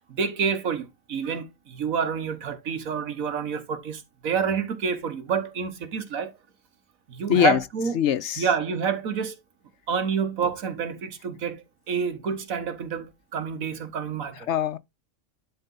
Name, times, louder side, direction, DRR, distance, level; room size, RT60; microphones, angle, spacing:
voice 1, 0.1-6.3 7.1-8.0 8.4-9.4 9.9-14.5, right 6 dB, 75° right, 1.7 m, -28 dB
voice 2, 8.0-8.4 14.5-14.8, left 9 dB, 65° left, 0.8 m, -22 dB
10.5 x 4.0 x 3.9 m
omnidirectional pair, 1.5 m